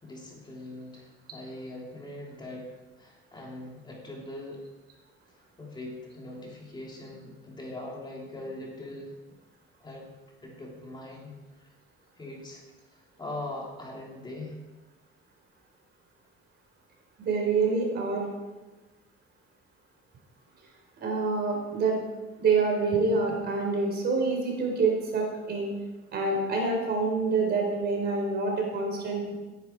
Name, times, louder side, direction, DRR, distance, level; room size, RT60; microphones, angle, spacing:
voice 1, 0.0-4.6 5.6-9.1 9.8-10.2 10.4-11.7 12.2-12.6 12.9-14.6, left 1 dB, 20° left, -2 dB, 3.2 m, -41 dB
voice 2, 17.2-18.3 21.0-22.0 22.4-25.7 26.1-29.3, right 4 dB, 50° right, 1 dB, 4.1 m, -26 dB
16.5 x 10.5 x 4.7 m, 1.2 s
cardioid pair, 140°, 21 cm